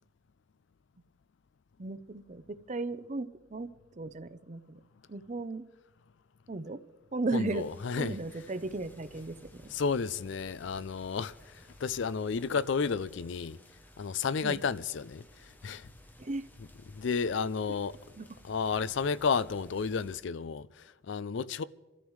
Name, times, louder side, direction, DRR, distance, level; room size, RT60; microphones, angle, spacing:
voice 1, 1.8-4.8 5.1-5.7 6.5-6.8 7.1-7.6 8.0-9.7 14.4-14.5 16.2-16.4 18.2-18.3, right 3 dB, 35° right, 0.6 m, -36 dB
voice 2, 7.3-8.2 9.7-13.6 14.0-15.9 16.9-18.0 18.4-21.6, left 5 dB, 60° left, 0.4 m, -32 dB
sound 1, 7.5-20.2, left 1 dB, 10° left, 0.8 m, -56 dB
27.0 x 14.0 x 3.2 m
head